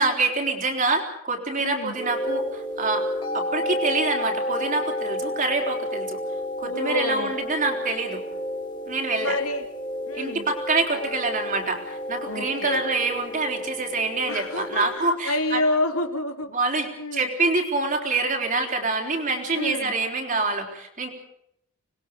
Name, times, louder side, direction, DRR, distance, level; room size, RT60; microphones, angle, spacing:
voice 1, 0.0-3.1 3.3-6.2 6.6-8.2 8.9-9.4 10.1-15.6 16.5-21.1, right 3 dB, 35° right, 3 dB, 4.0 m, -26 dB
voice 2, 1.6-2.0 6.6-7.3 9.2-9.7 10.1-10.5 12.3-12.8 14.3-17.3 19.5-19.9, left 2 dB, 90° left, 5 dB, 2.8 m, -28 dB
sound 1, 2.0-15.0, left 1 dB, 20° left, 3.5 m, -31 dB
26.0 x 21.0 x 5.4 m, 0.75 s
head